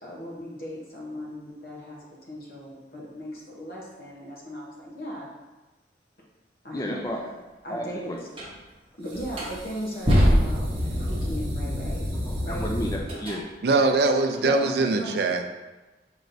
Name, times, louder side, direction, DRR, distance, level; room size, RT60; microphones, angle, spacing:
voice 1, 0.0-5.3 6.6-7.2 7.6-8.3 9.0-10.7 11.0-12.1 12.4-12.7 14.4-15.3, equal, 55° left, -4 dB, 0.9 m, -37 dB
voice 2, 6.7-7.3 7.7-8.2 12.1-13.4, equal, 20° left, 0 dB, 0.4 m, -32 dB
sound 1, 8.3-8.5 9.1-13.4, equal, 30° right, 0.9 m, -25 dB
voice 3, 13.6-15.4, right 3 dB, 60° right, 6 dB, 0.4 m, -22 dB
6.4 x 3.1 x 2.6 m, 1.1 s
head